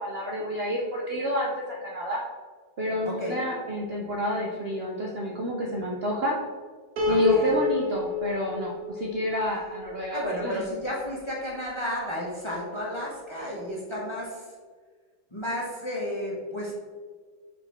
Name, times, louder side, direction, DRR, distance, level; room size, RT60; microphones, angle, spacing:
voice 1, 0.0-2.2 2.8-6.4 7.1-10.6, equal, 75° right, -2 dB, 0.5 m, -29 dB
voice 2, 3.0-3.4 7.1-7.5 10.1-14.4 15.3-16.7, equal, 20° left, -4 dB, 0.9 m, -32 dB
Piano, 7.0-10.2, left 4 dB, 55° right, 1.4 m, -30 dB
4.9 x 4.7 x 4.3 m, 1.5 s
omnidirectional pair, 2.1 m